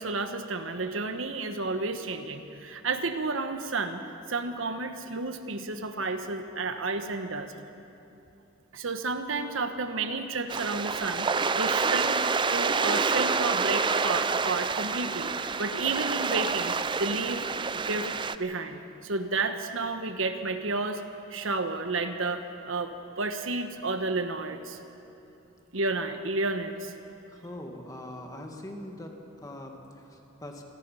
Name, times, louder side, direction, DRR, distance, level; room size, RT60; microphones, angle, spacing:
voice 1, 0.0-7.5 8.7-11.3 11.6-12.2 12.5-17.4 17.7-18.1 18.4-21.0 21.3-24.8 25.7-26.9, right 3 dB, 80° right, 7 dB, 1.3 m, -31 dB
sound 1, 10.5-18.4, right 5 dB, 25° right, 0.5 m, -28 dB
voice 2, 27.3-30.6, left 1 dB, 20° left, 2 dB, 2.0 m, -42 dB
27.0 x 18.5 x 5.7 m, 2.8 s
head